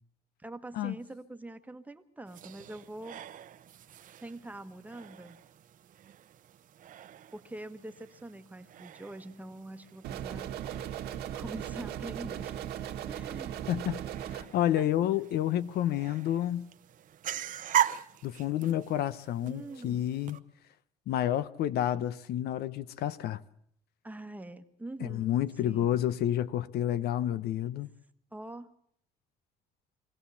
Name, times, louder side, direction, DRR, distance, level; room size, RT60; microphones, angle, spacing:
voice 1, 0.4-3.2 4.2-5.4 7.3-10.5 11.3-12.5 13.1-13.5 14.8-14.9 19.4-20.0 24.0-25.3 25.6-26.0 28.3-28.7, right 2 dB, 10° right, 1.2 m, -44 dB
sound 1, 2.3-20.4, right 10 dB, 50° right, 0.8 m, -40 dB
sound 2, 10.0-14.4, right 10 dB, 80° right, 1.8 m, -38 dB
voice 2, 13.7-14.0 14.3-16.7 18.2-20.4 21.1-23.4 25.0-27.9, left 11 dB, 70° left, 0.7 m, -30 dB
23.5 x 16.0 x 7.0 m
cardioid pair, 110°, 17 cm